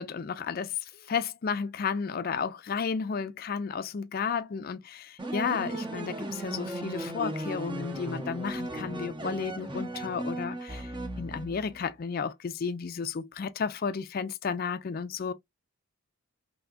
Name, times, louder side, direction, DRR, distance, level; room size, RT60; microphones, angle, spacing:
voice 1, 0.0-10.9 11.2-15.3, left 6 dB, 40° left, 0.3 m, -33 dB
sound 1, 5.2-11.8, right 1 dB, 20° right, 0.6 m, -36 dB
3.4 x 2.8 x 2.4 m
head